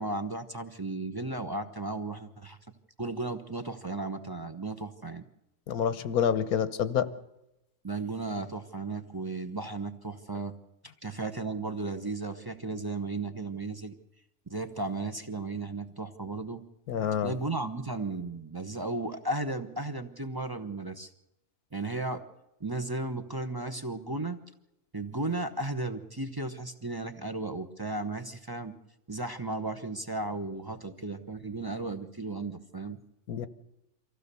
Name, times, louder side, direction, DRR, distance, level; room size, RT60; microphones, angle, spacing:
voice 1, 0.0-2.6 3.0-5.2 7.8-10.5 11.0-13.9 14.5-16.6 17.2-21.1 21.7-22.2 22.6-24.4 24.9-28.7 29.1-33.0, right 2 dB, 20° right, 9 dB, 0.8 m, -35 dB
voice 2, 5.7-7.1 16.9-17.3 33.3-33.5, left 8 dB, 85° left, 13 dB, 1.5 m, -27 dB
24.5 x 15.5 x 6.8 m, 0.88 s
omnidirectional pair, 1.6 m